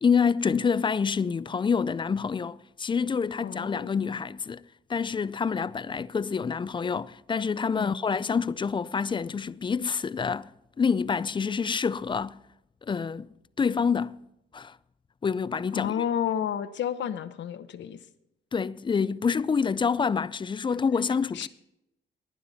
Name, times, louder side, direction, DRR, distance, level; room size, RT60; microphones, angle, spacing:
voice 1, 0.0-4.6 4.9-10.5 10.8-12.4 12.9-14.2 14.5-14.8 15.2-16.0 18.5-21.5, left 6 dB, 25° left, 0.4 m, -27 dB
voice 2, 3.4-4.0 7.7-8.0 15.7-18.0 21.3-21.5, left 9 dB, 65° left, 0.9 m, -31 dB
18.5 x 9.6 x 4.1 m
cardioid pair, 90°, 20 cm